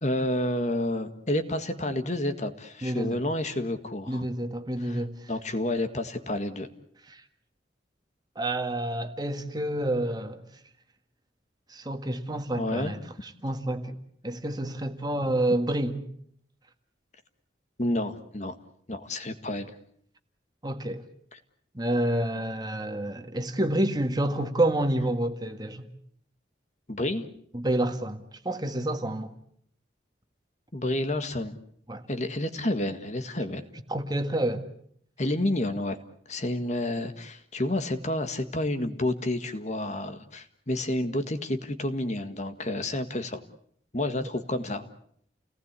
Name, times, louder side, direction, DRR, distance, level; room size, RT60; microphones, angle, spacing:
voice 1, 0.0-4.3 4.8-5.0 5.3-6.7 12.6-12.9 17.8-18.6 18.9-19.7 21.3-21.4 26.9-27.3 30.7-31.6 32.1-33.6 35.2-36.0 36.3-43.4 43.9-44.9, left 1 dB, 40° left, 1.7 m, -30 dB
voice 2, 2.8-3.2 4.1-5.3 7.1-7.2 8.4-10.4 11.7-14.0 14.2-16.0 20.6-21.0 21.7-25.9 27.5-29.4 31.9-32.0 33.9-34.7, right 1 dB, 20° right, 1.7 m, -29 dB
30.0 x 19.0 x 8.3 m
head